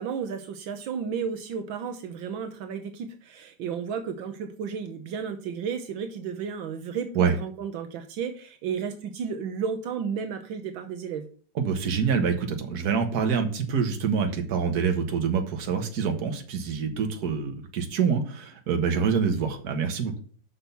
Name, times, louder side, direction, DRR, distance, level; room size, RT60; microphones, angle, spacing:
voice 1, 0.0-11.3, right 6 dB, 80° right, 6 dB, 1.6 m, -33 dB
voice 2, 11.6-20.2, right 6 dB, 55° right, 5 dB, 1.7 m, -26 dB
6.1 x 5.8 x 6.8 m, 0.44 s
omnidirectional pair, 2.1 m